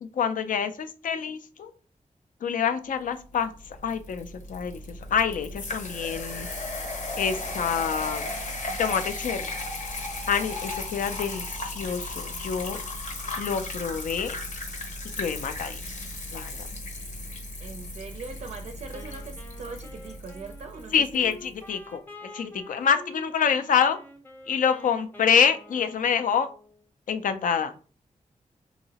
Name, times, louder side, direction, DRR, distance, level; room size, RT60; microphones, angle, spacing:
voice 1, 0.0-1.7 2.4-3.5 3.8-4.8 5.1-6.5 7.2-8.3 8.8-9.5 10.3-12.8 13.4-14.4 15.2-15.8 16.3-16.7 20.9-24.0 24.5-26.5 27.1-27.7, left 7 dB, 85° left, 0.4 m, -26 dB
sound 1, 3.4-21.4, left 2 dB, 70° left, 0.8 m, -36 dB
voice 2, 17.6-21.4, right 4 dB, 60° right, 0.4 m, -41 dB
Wind instrument woodwind instrument, 18.9-26.8, left 1 dB, 15° left, 0.6 m, -47 dB
2.8 x 2.8 x 2.8 m
wide cardioid pair, 115°, 13 cm